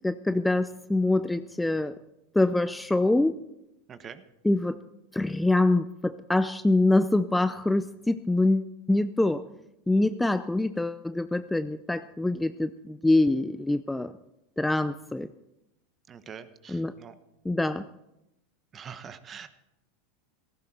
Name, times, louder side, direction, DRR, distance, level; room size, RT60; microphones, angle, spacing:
voice 1, 0.0-1.9 2.3-3.4 4.4-4.8 5.1-9.5 9.9-14.1 14.6-15.3 16.7-16.9 17.4-17.8, left 2 dB, 5° left, 12 dB, 0.5 m, -25 dB
voice 2, 3.9-4.2 16.1-17.1 18.7-19.5, right 7 dB, 30° right, 11 dB, 1.2 m, -44 dB
17.0 x 15.0 x 4.4 m, 0.90 s
hypercardioid pair, 100°, 0 cm